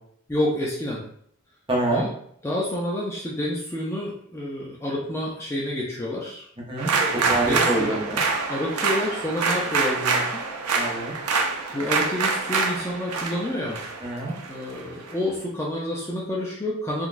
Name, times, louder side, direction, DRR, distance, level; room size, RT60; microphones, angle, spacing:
voice 1, 0.3-1.0 1.9-2.1 2.4-6.5 7.1-8.0 8.5-10.4 11.4-13.8 14.5-17.1, left 1 dB, 10° left, -4 dB, 0.4 m, -29 dB
voice 2, 1.7-2.1 6.6-6.9 7.3-8.2 10.7-11.2 14.0-14.3, right 2 dB, 25° right, -2 dB, 0.7 m, -26 dB
sound 1, 6.8-15.1, right 4 dB, 85° right, 0.5 m, -26 dB
3.8 x 2.2 x 2.5 m, 0.67 s
head